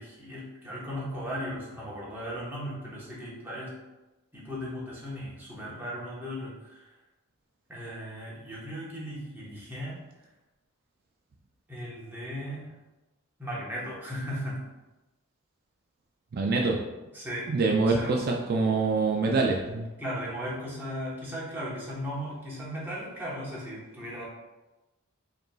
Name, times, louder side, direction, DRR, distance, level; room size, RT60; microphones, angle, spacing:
voice 1, 0.0-3.7 4.3-6.9 7.7-10.0 11.7-12.7 13.4-14.6 17.1-17.5 17.8-18.2 20.0-24.2, equal, 10° right, -7 dB, 1.0 m, -37 dB
voice 2, 16.3-16.8 17.5-19.9, right 3 dB, 45° right, 0 dB, 0.4 m, -25 dB
5.0 x 3.0 x 2.3 m, 1.1 s
head